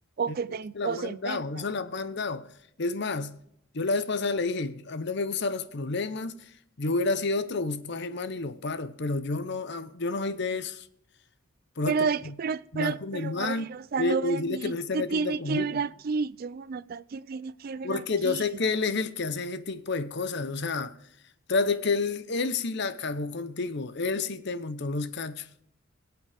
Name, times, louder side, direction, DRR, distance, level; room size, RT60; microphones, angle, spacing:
voice 1, 0.2-1.7 11.9-18.5, right 5 dB, 45° right, 0.4 m, -31 dB
voice 2, 0.8-2.5 2.8-3.4 3.7-6.4 6.8-10.9 11.8-12.1 12.7-13.7 14.0-15.8 17.8-21.0 21.5-25.5, left 3 dB, 55° left, 0.8 m, -30 dB
21.5 x 8.0 x 3.4 m
head